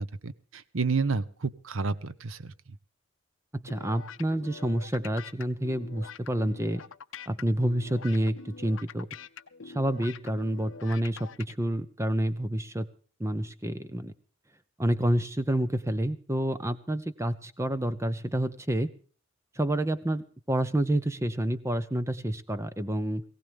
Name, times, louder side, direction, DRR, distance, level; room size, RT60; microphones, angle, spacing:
voice 1, 0.0-2.5, right 4 dB, 75° right, 17 dB, 0.8 m, -30 dB
voice 2, 3.5-6.8 7.3-9.1 9.6-12.9 13.2-14.1 14.8-18.9 19.5-23.2, right 1 dB, 15° right, 13 dB, 0.8 m, -28 dB
sound 1, 3.7-11.5, left 6 dB, 70° left, 0.7 m, -45 dB
19.0 x 16.5 x 3.5 m, 0.41 s
head